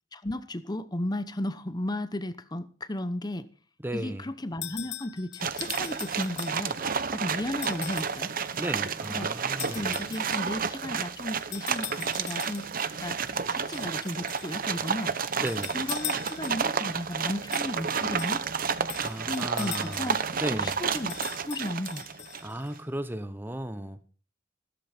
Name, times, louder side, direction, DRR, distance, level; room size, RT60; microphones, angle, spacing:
voice 1, 0.1-3.5 3.9-6.8 7.1-8.3 9.1-9.3 9.7-12.7 13.0-13.2 13.5-15.2 15.7-18.4 19.2-20.2 20.5-21.2 21.4-22.0, left 1 dB, 20° left, 0.9 m, -34 dB
voice 2, 3.8-4.3 8.6-9.9 15.4-15.8 19.0-20.1 20.4-20.8 22.4-24.0, right 1 dB, 10° right, 0.8 m, -35 dB
sound 1, 4.6-6.9 7.6-8.2 9.6-10.6 11.5-12.9 13.7-14.6 15.3-16.8 17.5-20.3 20.9-22.7, left 15 dB, 65° left, 0.9 m, -41 dB
sound 2, 5.4-22.6, right 6 dB, 50° right, 0.9 m, -31 dB
15.5 x 13.5 x 4.4 m
head